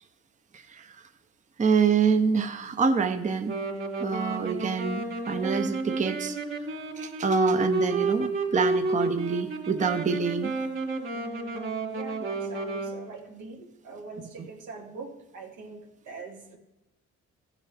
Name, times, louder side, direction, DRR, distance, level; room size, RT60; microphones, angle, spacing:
voice 1, 0.5-1.1 1.6-3.6 4.0-6.4 6.9-10.5, right 5 dB, 25° right, 8 dB, 0.7 m, -26 dB
Wind instrument woodwind instrument, 3.5-13.0, right 2 dB, 40° right, 2.7 m, -30 dB
voice 2, 11.1-16.6, right 3 dB, 80° right, 1 dB, 2.2 m, -43 dB
15.0 x 7.4 x 3.4 m, 0.95 s
cardioid pair, 90°, 30 cm